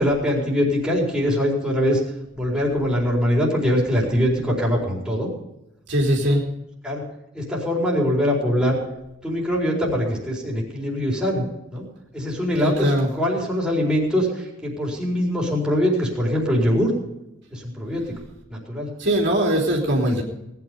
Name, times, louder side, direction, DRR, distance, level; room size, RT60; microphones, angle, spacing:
voice 1, 0.0-2.0 2.3-5.3 6.3-6.4 6.8-7.0 7.3-8.8 9.2-11.4 11.7-11.9 12.1-16.9 17.5-18.0 18.5-18.9, equal, 5° right, -4 dB, 4.6 m, -22 dB
voice 2, 5.9-6.4 12.6-13.1 19.0-20.2, equal, 60° right, -1 dB, 3.4 m, -20 dB
19.5 x 9.8 x 5.3 m, 0.88 s
head